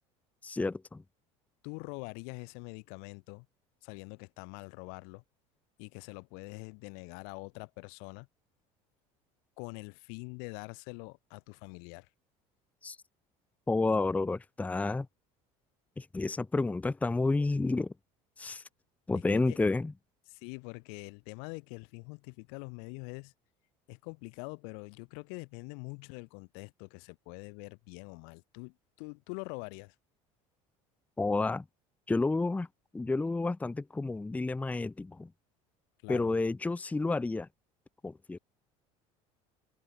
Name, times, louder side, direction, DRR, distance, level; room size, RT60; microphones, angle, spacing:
voice 1, 0.4-1.0 12.8-13.0 13.7-15.1 16.0-17.9 18.4-18.6 19.1-19.9 31.2-31.6 32.1-32.7 32.9-35.3 36.1-37.5 38.0-38.4, left 3 dB, 10° left, 0.7 m, -30 dB
voice 2, 1.6-3.5 3.8-5.2 5.8-8.3 9.6-12.1 19.3-19.6 20.3-23.3 23.9-29.9 36.0-36.3, left 40 dB or more, 80° left, 1.6 m, -44 dB
supercardioid pair, 115°, 15 cm